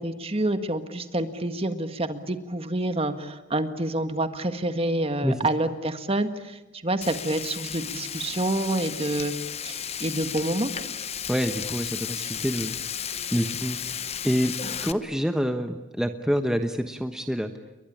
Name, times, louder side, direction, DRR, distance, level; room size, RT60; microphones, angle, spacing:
voice 1, 0.0-9.3 9.6-10.7, right 1 dB, 30° right, 9 dB, 1.7 m, -28 dB
Frying (food), 7.0-14.9, left 8 dB, 35° left, 0.9 m, -34 dB
voice 2, 11.3-12.7 13.3-14.0 14.2-14.5 14.8-17.5, equal, 5° right, 6 dB, 1.1 m, -27 dB
30.0 x 22.5 x 8.6 m, 1.0 s
head